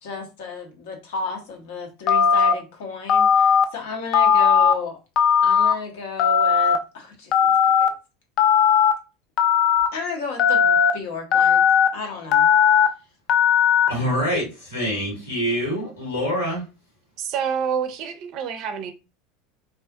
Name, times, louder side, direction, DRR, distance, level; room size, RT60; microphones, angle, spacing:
voice 1, 0.0-5.0 5.4-7.9 9.9-11.6 11.9-12.5, left 5 dB, 70° left, 0.7 m, -33 dB
Telephone, 2.1-2.5 3.1-3.6 4.1-4.7 5.2-5.7 6.2-6.8 7.3-7.9 8.4-8.9 9.4-9.9 10.4-10.9 11.3-11.9 12.3-12.9 13.3-13.9, left 7 dB, 50° left, 0.3 m, -17 dB
voice 2, 13.9-16.6, equal, 85° left, 1.4 m, -25 dB
voice 3, 17.2-18.9, right 7 dB, 50° right, 0.4 m, -27 dB
2.4 x 2.4 x 2.3 m
hypercardioid pair, 75°, 0 cm